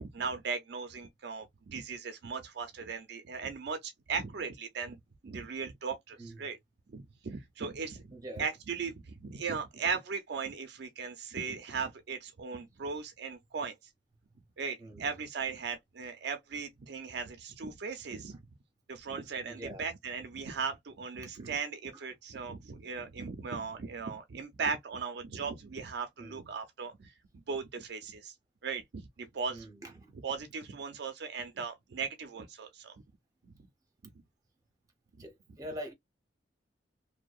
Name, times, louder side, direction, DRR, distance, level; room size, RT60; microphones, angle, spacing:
voice 1, 0.0-5.0 5.2-6.6 6.9-13.8 14.6-18.4 18.9-27.1 27.5-28.3 28.6-29.7 30.2-33.0 33.4-33.5, right 5 dB, 55° right, 0.4 m, -38 dB
voice 2, 6.2-6.6 8.1-8.5 14.8-15.1 19.5-19.9 21.2-21.4 21.9-22.0 26.2-26.4 29.5-30.1 35.2-35.9, equal, 20° right, 0.6 m, -45 dB
2.6 x 2.1 x 2.3 m
head